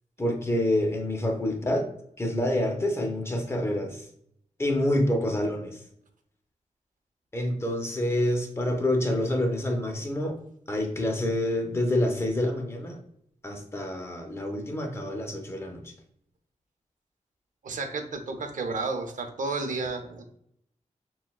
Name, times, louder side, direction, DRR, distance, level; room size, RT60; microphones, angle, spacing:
voice 1, 0.2-1.9 2.2-4.1 4.6-5.8 7.3-10.4 10.7-13.0 13.4-15.8, left 1 dB, 20° left, 3 dB, 0.6 m, -27 dB
voice 2, 17.6-20.2, right 3 dB, 90° right, 5 dB, 0.6 m, -32 dB
5.8 x 2.2 x 2.3 m, 0.72 s
wide cardioid pair, 180°, 13 cm